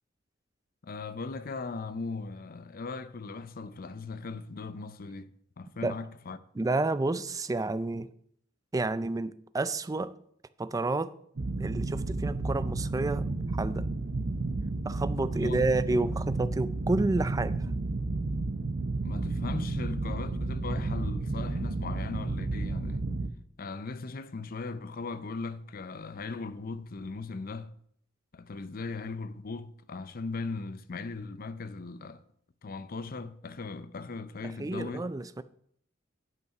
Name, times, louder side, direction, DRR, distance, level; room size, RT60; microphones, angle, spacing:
voice 1, 0.8-6.4 15.3-15.7 19.0-23.1 23.6-27.8 28.3-32.2 32.6-35.1, left 4 dB, 50° left, 0.5 m, -38 dB
voice 2, 6.6-8.1 8.7-10.1 10.6-11.1 11.6-13.3 13.6-13.9 14.8-17.6 34.6-35.4, right 2 dB, 20° right, 0.4 m, -30 dB
sound 1, 11.4-23.3, right 2 dB, 55° right, 0.7 m, -32 dB
9.4 x 5.5 x 5.8 m
head